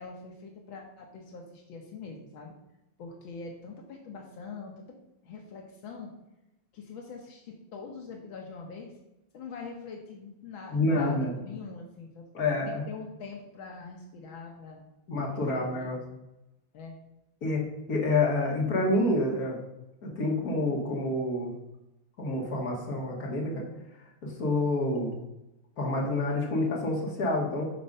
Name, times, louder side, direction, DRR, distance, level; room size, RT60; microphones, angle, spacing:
voice 1, 0.0-2.5 3.0-5.0 5.2-6.1 6.7-8.9 9.3-12.3 12.7-14.9 15.5-15.9 16.7-17.0, left 4 dB, 80° left, 1 dB, 1.9 m, -43 dB
voice 2, 10.7-11.4 12.3-12.9 15.1-16.0 17.4-17.6 17.9-19.6 20.0-21.5 22.2-23.6 24.0-25.1 25.8-27.7, left 2 dB, 50° left, -1 dB, 2.4 m, -28 dB
10.5 x 4.6 x 5.4 m, 0.94 s
omnidirectional pair, 2.1 m